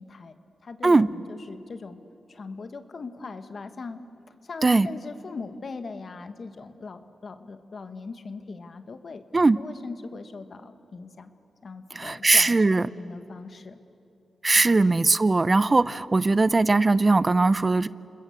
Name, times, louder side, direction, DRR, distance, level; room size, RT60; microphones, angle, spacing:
voice 1, 0.0-2.0 2.3-4.0 4.3-9.2 9.6-11.3 11.6-13.8 14.5-14.8, left 4 dB, 55° left, 9 dB, 1.5 m, -40 dB
voice 2, 12.0-12.8 14.4-17.9, right 3 dB, 35° right, 17 dB, 0.6 m, -20 dB
29.0 x 20.5 x 8.0 m, 2.9 s
cardioid pair, 60°, 0 cm